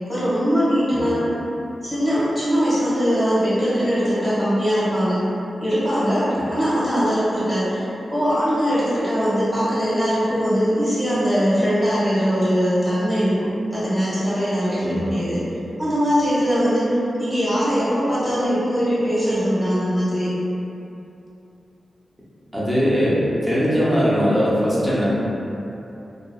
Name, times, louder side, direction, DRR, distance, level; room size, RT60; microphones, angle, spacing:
voice 1, 0.1-1.2 1.8-5.2 5.6-15.4 15.8-20.3, equal, 20° left, -12 dB, 1.3 m, -21 dB
voice 2, 22.5-25.1, equal, 5° left, -8 dB, 0.6 m, -20 dB
2.7 x 2.5 x 2.3 m, 2.9 s
wide cardioid pair, 115°, 0 cm